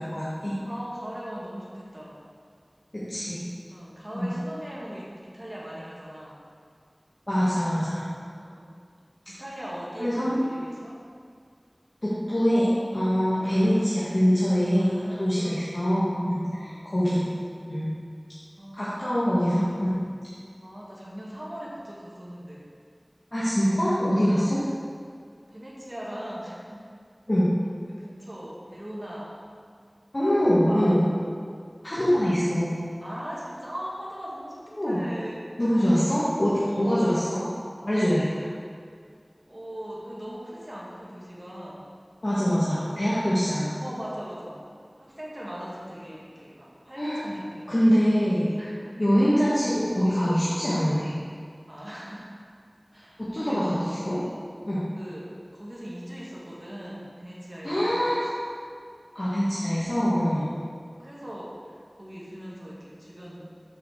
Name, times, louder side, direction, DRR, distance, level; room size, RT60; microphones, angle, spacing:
voice 1, 0.0-0.6 2.9-3.4 4.1-4.3 7.3-8.0 10.0-10.4 12.0-17.3 17.7-17.8 18.8-20.0 23.3-24.6 27.3-27.5 30.1-31.0 31.8-32.7 34.7-35.0 35.6-37.4 37.8-38.5 42.2-43.7 47.0-47.2 47.7-48.5 49.0-51.1 53.2-54.2 54.7-54.8 57.6-58.3 59.2-60.5, equal, 55° left, -11 dB, 1.8 m, -24 dB
voice 2, 0.7-2.2 3.7-6.4 8.4-8.7 9.3-11.0 13.3-14.0 14.7-15.7 16.5-16.9 18.6-18.9 20.6-22.7 24.3-24.7 25.5-26.9 27.9-29.4 30.2-31.1 33.0-35.5 36.6-37.2 39.5-42.0 43.8-44.6 45.0-47.7 48.6-49.0 51.7-52.3 52.9-53.7 55.0-58.1 60.4-60.7 61.0-63.5, equal, 45° right, -6 dB, 1.8 m, -40 dB
6.8 x 5.1 x 6.4 m, 2.1 s
wide cardioid pair, 40°, 0 cm